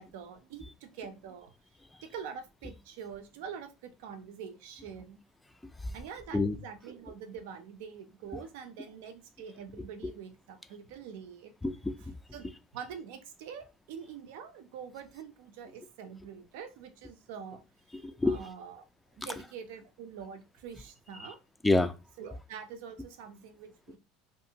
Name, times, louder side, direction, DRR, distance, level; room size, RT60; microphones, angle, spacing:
voice 1, 0.0-1.5 2.0-5.2 5.9-11.5 12.3-12.5 12.7-17.7 18.2-18.8 19.2-21.4 22.2-24.0, right 7 dB, 75° right, 0.5 m, -45 dB
voice 2, 11.6-12.1 17.9-18.4 21.2-21.3 21.6-21.9, left 2 dB, 5° left, 0.3 m, -28 dB
2.5 x 2.5 x 2.8 m
supercardioid pair, 115°, 0 cm